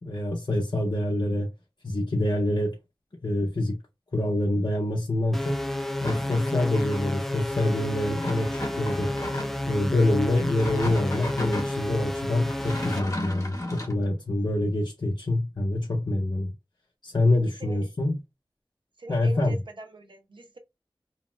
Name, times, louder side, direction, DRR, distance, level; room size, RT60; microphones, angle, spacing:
voice 1, 0.0-1.5 1.8-2.8 3.2-3.8 4.1-5.7 6.0-9.1 9.7-16.5 17.0-18.2 19.1-19.6, left 1 dB, 60° left, 0.6 m, -26 dB
sound 1, 5.3-13.0, left 1 dB, 5° left, 0.5 m, -31 dB
sound 2, 6.0-7.2 8.2-9.7 10.4-11.8 12.4-14.0, left 1 dB, 40° left, 1.1 m, -35 dB
voice 2, 19.0-20.6, right 2 dB, 70° right, 0.7 m, -42 dB
2.8 x 2.1 x 3.0 m
wide cardioid pair, 45°, 8 cm